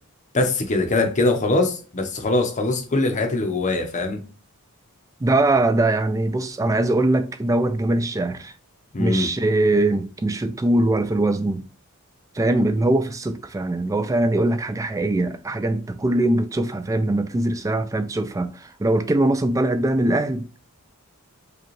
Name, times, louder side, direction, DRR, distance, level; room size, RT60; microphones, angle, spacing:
voice 1, 0.3-4.2 8.9-9.3, left 2 dB, 35° left, 0.7 m, -22 dB
voice 2, 5.2-8.5 9.0-11.6 12.3-20.6, right 2 dB, 15° right, 0.3 m, -22 dB
4.9 x 2.3 x 3.1 m
head